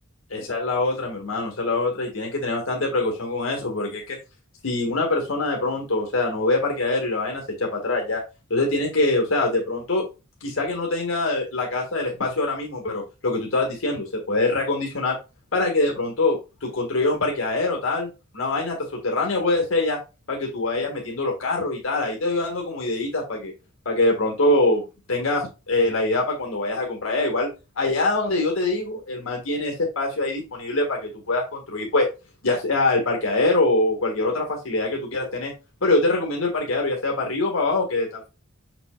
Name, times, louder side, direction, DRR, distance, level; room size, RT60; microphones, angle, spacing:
voice 1, 0.3-4.2 4.6-8.2 8.5-10.0 10.4-15.2 15.5-18.1 18.3-20.0 20.3-23.5 23.9-27.5 27.8-32.0 32.4-35.5 35.8-38.3, left 2 dB, 70° left, 0 dB, 1.9 m, -24 dB
6.7 x 5.9 x 2.4 m, 0.28 s
head